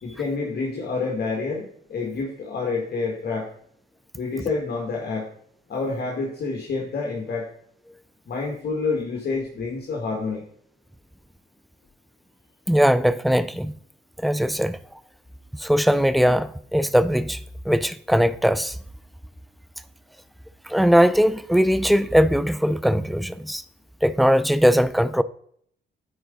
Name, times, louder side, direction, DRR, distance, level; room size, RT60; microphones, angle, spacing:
voice 1, 0.0-3.5 4.2-5.3 5.7-7.5 8.3-10.4, left 4 dB, 55° left, 1.8 m, -28 dB
voice 2, 12.7-13.7 14.2-14.8 15.6-17.4 17.7-18.7 20.7-23.6 24.0-25.2, equal, ahead, 0.4 m, -20 dB
9.4 x 4.8 x 3.9 m
cardioid pair, 90°, 20 cm